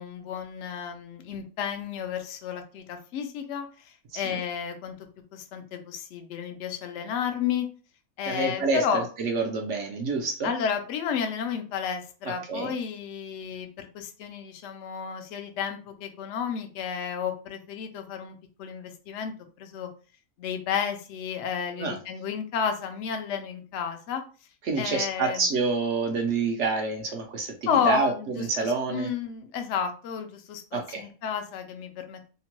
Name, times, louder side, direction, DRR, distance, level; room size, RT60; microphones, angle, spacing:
voice 1, 0.0-4.9 5.3-7.7 8.2-9.0 10.4-19.9 20.4-24.2 24.8-25.5 27.7-30.6 30.9-32.3, left 7 dB, 65° left, 6 dB, 0.7 m, -32 dB
voice 2, 8.3-10.5 12.5-12.7 21.8-22.0 24.6-29.1 30.7-31.1, right 4 dB, 65° right, 3 dB, 0.8 m, -28 dB
2.8 x 2.1 x 2.9 m, 0.38 s
omnidirectional pair, 1.5 m